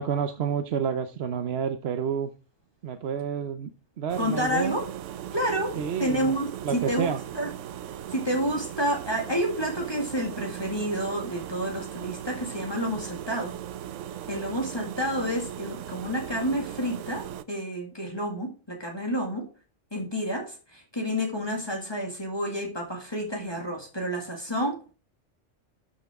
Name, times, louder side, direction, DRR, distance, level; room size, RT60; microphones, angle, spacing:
voice 1, 0.0-2.3 2.8-3.7 4.0-4.8 5.8-6.3 6.6-7.2, right 7 dB, 65° right, 8 dB, 0.9 m, -29 dB
sound 1, 4.1-17.4, right 10 dB, 90° right, 1.0 m, -38 dB
voice 2, 4.2-4.8 5.3-5.7 6.0-7.5 8.1-13.5 14.3-19.5 19.9-24.9, equal, 20° left, 1 dB, 2.0 m, -29 dB
12.5 x 5.8 x 3.6 m, 0.34 s
omnidirectional pair, 1.2 m